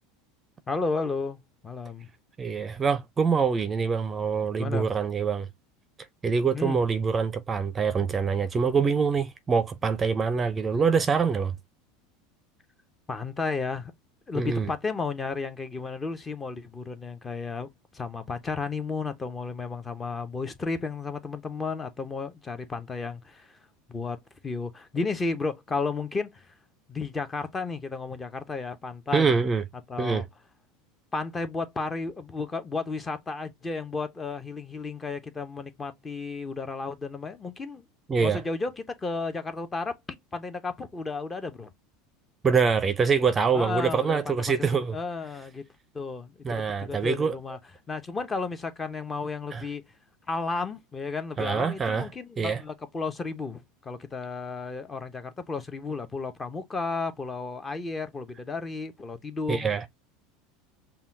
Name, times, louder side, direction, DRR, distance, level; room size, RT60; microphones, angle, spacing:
voice 1, 0.7-2.1 4.6-4.9 6.5-6.8 13.1-13.9 14.3-23.6 23.9-26.5 26.9-29.3 29.9-30.2 31.1-37.8 38.2-39.9 40.3-41.7 43.5-44.5 44.9-45.6 45.9-47.6 47.9-49.8 50.3-59.7, left 4 dB, 20° left, 0.7 m, -33 dB
voice 2, 2.4-5.5 6.2-11.5 14.3-14.7 29.1-29.6 30.0-30.2 38.1-38.4 42.4-45.0 46.4-47.3 49.5-49.6 51.4-52.1 52.4-52.6 59.5-59.8, right 5 dB, 25° right, 0.5 m, -25 dB
5.5 x 2.3 x 2.6 m
supercardioid pair, 110°, 0 cm